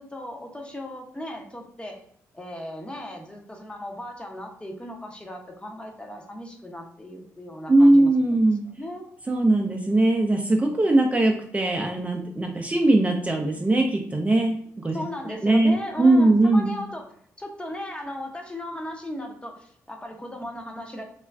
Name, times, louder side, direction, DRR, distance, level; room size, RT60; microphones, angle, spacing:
voice 1, 0.0-2.0 2.3-8.1 8.7-9.1 14.9-21.0, left 1 dB, 15° left, 2 dB, 0.7 m, -37 dB
voice 2, 7.7-8.6 9.3-15.0 15.4-16.7, right 2 dB, 20° right, 1 dB, 0.4 m, -20 dB
2.4 x 2.2 x 3.3 m, 0.63 s
cardioid pair, 65°, 7 cm